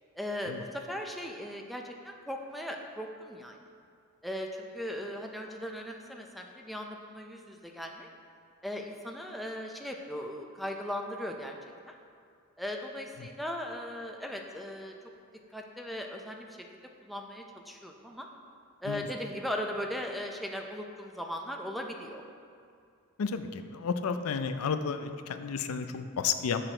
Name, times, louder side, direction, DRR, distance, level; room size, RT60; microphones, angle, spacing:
voice 1, 0.2-3.6 4.2-8.1 8.6-11.5 11.9-12.0 12.6-14.9 15.5-16.5 17.1-18.3 18.8-22.2, left 1 dB, ahead, 1 dB, 0.4 m, -38 dB
voice 2, 23.2-26.6, left 6 dB, 75° left, 9 dB, 0.4 m, -32 dB
6.9 x 5.9 x 4.4 m, 2.4 s
head